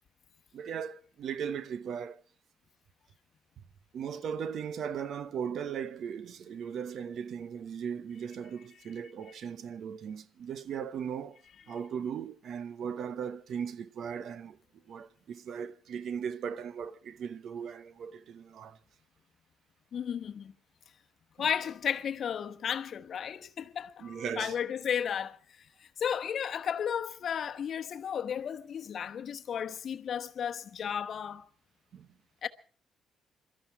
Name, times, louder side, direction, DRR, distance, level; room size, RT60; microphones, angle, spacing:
voice 1, 0.5-2.2 3.9-11.4 11.7-14.6 14.9-18.8 21.4-21.5 24.0-24.6 31.9-32.1, right 7 dB, 65° right, 1.0 m, -38 dB
voice 2, 19.9-20.5 21.4-31.4 32.4-32.5, left 8 dB, 60° left, 1.0 m, -34 dB
23.0 x 13.0 x 4.7 m
cardioid pair, 90°, 0 cm